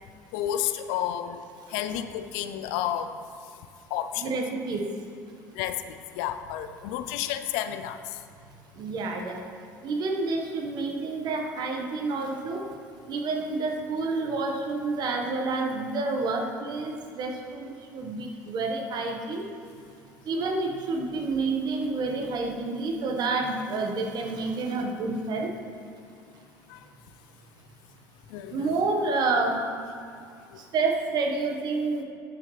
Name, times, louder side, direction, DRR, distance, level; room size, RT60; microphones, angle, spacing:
voice 1, 0.3-1.4 1.7-3.2 3.9-4.3 5.6-5.8 6.2-8.0 26.7-26.8 28.3-28.7, left 11 dB, 75° left, 10 dB, 0.5 m, -31 dB
voice 2, 4.2-4.9 8.8-9.4 9.8-12.6 13.1-19.4 20.2-25.5 28.5-29.6 30.6-32.0, right 3 dB, 55° right, 3 dB, 1.3 m, -29 dB
13.0 x 6.6 x 3.3 m, 2.4 s
hypercardioid pair, 70°, 9 cm